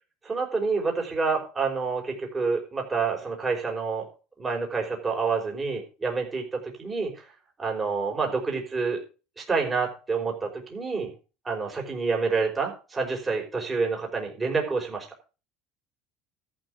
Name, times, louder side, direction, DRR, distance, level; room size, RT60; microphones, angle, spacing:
voice 1, 0.2-4.1 4.4-7.2 7.6-9.0 9.4-11.1 11.4-15.1, right 4 dB, 20° right, 1 dB, 5.4 m, -28 dB
13.5 x 6.2 x 6.5 m, 0.34 s
cardioid pair, 130°, 0 cm